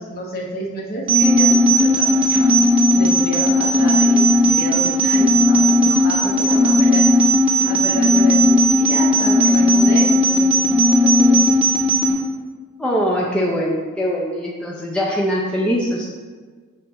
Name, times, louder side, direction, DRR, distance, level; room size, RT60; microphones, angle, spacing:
voice 1, 0.0-2.5 3.0-7.1 7.7-11.6, equal, 45° left, -2 dB, 1.0 m, -30 dB
sound 1, 1.1-12.1, equal, 25° right, 0.9 m, -15 dB
voice 2, 12.8-16.1, equal, 5° left, -4 dB, 0.5 m, -22 dB
6.8 x 2.5 x 5.5 m, 1.5 s
head